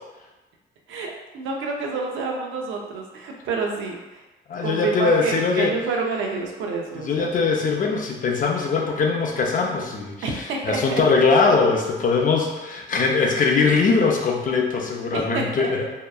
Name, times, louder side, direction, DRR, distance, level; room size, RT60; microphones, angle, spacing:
voice 1, 0.9-4.2 4.6-7.3 10.2-11.0 15.1-15.7, right 4 dB, 85° right, 1 dB, 0.5 m, -28 dB
voice 2, 4.5-5.8 6.9-15.9, left 4 dB, 40° left, 1 dB, 0.4 m, -21 dB
2.8 x 2.3 x 2.3 m, 1.1 s
cardioid pair, 115°, 20 cm